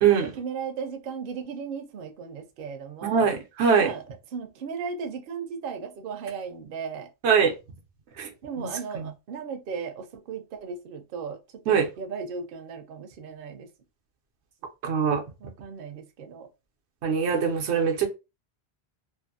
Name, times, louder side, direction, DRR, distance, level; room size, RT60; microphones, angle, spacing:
voice 1, 0.1-3.3 3.8-4.0 4.3-7.1 8.4-11.4 11.7-13.7 15.4-16.5, right 6 dB, 65° right, 0.7 m, -36 dB
voice 2, 3.0-3.9 7.2-7.5 8.2-8.3 8.6-8.7 8.9-9.1 11.7-11.9 14.8-15.2 17.0-18.1, right 6 dB, 90° right, 0.9 m, -22 dB
2.5 x 2.5 x 2.6 m
omnidirectional pair, 1.1 m